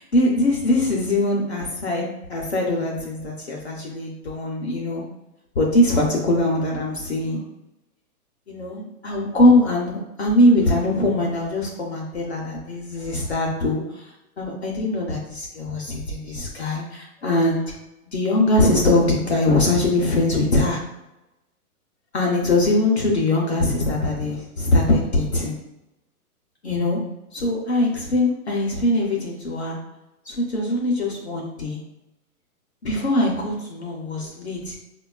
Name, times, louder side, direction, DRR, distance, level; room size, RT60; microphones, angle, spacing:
voice 1, 0.1-5.0 5.6-7.4 8.5-13.8 14.4-17.7 18.1-20.8 22.1-25.6 26.6-27.0 27.3-29.8 30.3-31.8 32.8-34.7, left 1 dB, 50° left, -2 dB, 0.5 m, -22 dB
4.5 x 2.2 x 2.3 m, 0.95 s
hypercardioid pair, 180°, 45 cm